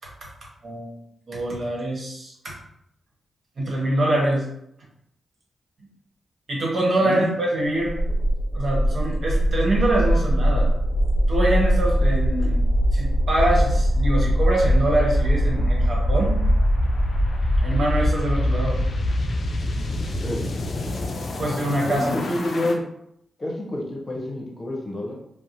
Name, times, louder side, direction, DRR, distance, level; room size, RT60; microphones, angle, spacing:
voice 1, 1.3-2.5 3.6-4.4 6.5-7.9 8.5-10.7 11.3-12.6 12.9-16.4 17.6-18.8 21.4-22.1, right 1 dB, 65° right, -3 dB, 1.0 m, -24 dB
voice 2, 7.0-7.3 20.2-20.4 21.8-22.8 23.4-25.2, left 1 dB, 40° left, -1 dB, 0.8 m, -28 dB
sound 1, 7.8-22.7, equal, 65° left, 0.4 m, -22 dB
2.8 x 2.1 x 2.5 m, 0.76 s
supercardioid pair, 45°, 0 cm